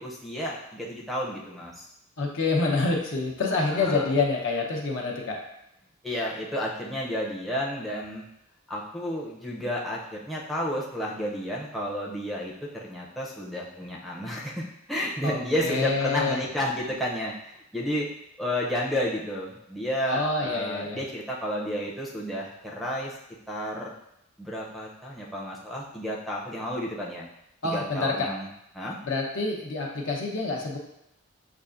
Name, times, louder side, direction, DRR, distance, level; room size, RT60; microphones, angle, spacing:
voice 1, 0.0-1.9 3.7-4.1 6.0-8.3 8.7-18.1 18.4-23.1 23.5-23.9 24.4-27.3 27.6-28.5 28.7-29.0, equal, ahead, -3 dB, 0.5 m, -31 dB
voice 2, 2.2-5.4 15.2-16.4 20.1-21.0 27.6-28.3 29.0-30.8, left 3 dB, 65° left, 0 dB, 0.8 m, -27 dB
6.6 x 2.5 x 2.5 m, 0.81 s
head